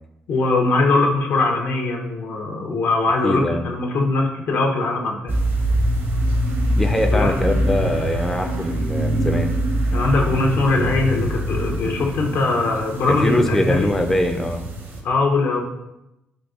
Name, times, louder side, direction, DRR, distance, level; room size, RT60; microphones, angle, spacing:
voice 1, 0.3-5.3 7.1-7.3 9.9-13.8 15.0-15.6, left 3 dB, 70° left, 0 dB, 0.6 m, -21 dB
voice 2, 3.2-3.6 6.8-9.5 13.1-14.6, left 1 dB, 5° left, 4 dB, 0.3 m, -22 dB
sound 1, 5.3-15.0, right 1 dB, 50° right, 0.7 m, -23 dB
3.9 x 2.6 x 2.4 m, 0.90 s
supercardioid pair, 65°, 5 cm